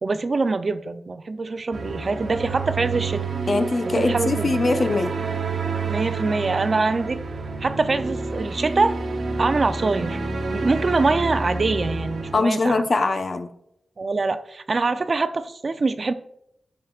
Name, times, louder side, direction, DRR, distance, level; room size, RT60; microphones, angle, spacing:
voice 1, 0.0-3.2 4.0-4.5 5.8-7.2 7.6-9.0 9.4-10.2 10.5-12.8 14.0-16.1, right 3 dB, 50° right, 11 dB, 0.5 m, -24 dB
sound 1, 1.7-12.4, right 4 dB, 80° right, 1.3 m, -29 dB
voice 2, 3.5-5.1 12.3-13.5, left 3 dB, 50° left, 8 dB, 0.8 m, -22 dB
15.5 x 5.8 x 2.4 m, 0.77 s
wide cardioid pair, 115°, 0 cm